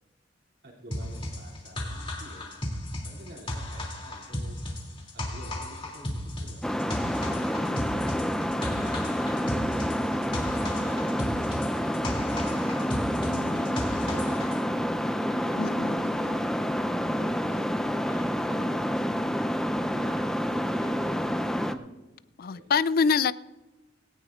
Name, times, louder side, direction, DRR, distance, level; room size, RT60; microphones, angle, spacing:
voice 1, 0.6-2.5 3.0-4.6 5.1-6.9 7.1-8.5 9.5-12.5 13.5-19.0 19.9-21.8 22.5-22.7, right 1 dB, 65° right, 2.9 m, -47 dB
sound 1, 0.9-14.6, left 1 dB, 30° left, 2.8 m, -35 dB
sound 2, 6.6-21.7, equal, 5° left, 0.5 m, -28 dB
voice 2, 13.3-13.7 15.6-16.0 22.4-23.3, left 5 dB, 55° left, 0.4 m, -26 dB
19.0 x 17.5 x 2.5 m
head